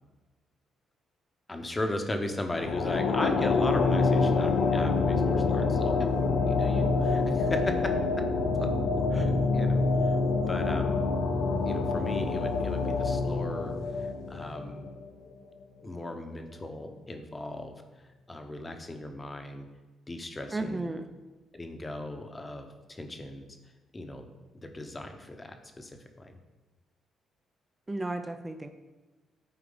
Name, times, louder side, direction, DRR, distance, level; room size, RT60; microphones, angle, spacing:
voice 1, 1.5-6.1 6.4-7.8 8.5-8.7 9.1-11.0 11.6-14.9 15.8-19.7 20.1-20.9 21.5-23.5 23.9-24.2 24.5-26.4, left 1 dB, 20° left, 5 dB, 0.9 m, -37 dB
sound 1, 2.5-15.1, left 4 dB, 85° left, 0.8 m, -26 dB
voice 2, 20.5-21.0 27.9-28.7, right 2 dB, 20° right, 7 dB, 0.5 m, -33 dB
9.6 x 4.6 x 3.9 m, 1.2 s
cardioid pair, 90°, 0 cm